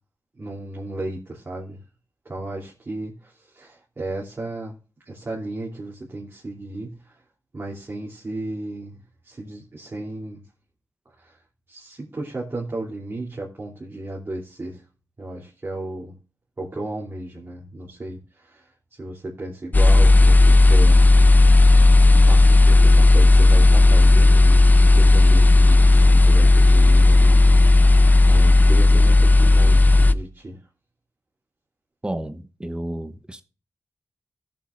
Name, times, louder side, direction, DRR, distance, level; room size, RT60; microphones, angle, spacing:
voice 1, 0.3-1.8 2.2-4.8 5.0-7.2 7.5-10.4 11.2-11.4 11.7-14.8 15.2-16.2 16.6-21.1 22.1-27.9 28.2-30.7, right 2 dB, 40° right, 3.1 m, -34 dB
sound 1, 19.7-30.1, left 2 dB, 30° left, 0.6 m, -13 dB
voice 2, 32.0-33.4, right 1 dB, 15° right, 0.9 m, -31 dB
18.5 x 7.4 x 2.5 m
cardioid pair, 55°, 6 cm